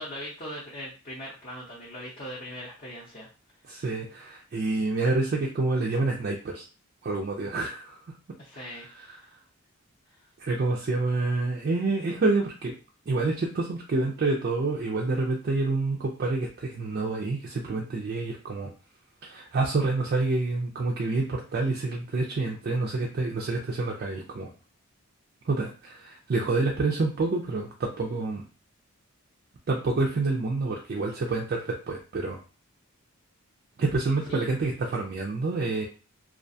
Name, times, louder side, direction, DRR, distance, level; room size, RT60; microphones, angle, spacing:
voice 1, 0.0-3.3 8.4-9.3 10.1-10.2 34.3-34.5, equal, 40° left, -6 dB, 0.6 m, -40 dB
voice 2, 3.7-6.6 7.0-8.0 9.0-9.2 10.4-12.7 13.1-18.7 19.2-24.5 25.5-28.4 29.7-32.4 33.8-35.9, right 3 dB, 45° right, -1 dB, 0.3 m, -28 dB
2.3 x 2.2 x 2.6 m, 0.36 s
head